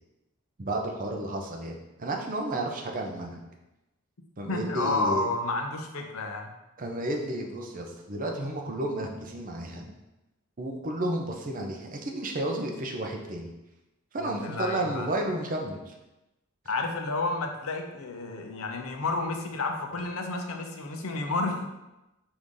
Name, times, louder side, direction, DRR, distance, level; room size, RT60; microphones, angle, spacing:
voice 1, 0.6-3.4 4.4-5.3 6.8-9.9 10.6-13.5 14.1-15.9, right 1 dB, 40° right, 2 dB, 0.6 m, -32 dB
voice 2, 4.5-6.5 14.2-15.1 16.7-21.6, left 2 dB, 75° left, 4 dB, 0.6 m, -31 dB
4.8 x 2.6 x 3.6 m, 0.97 s
head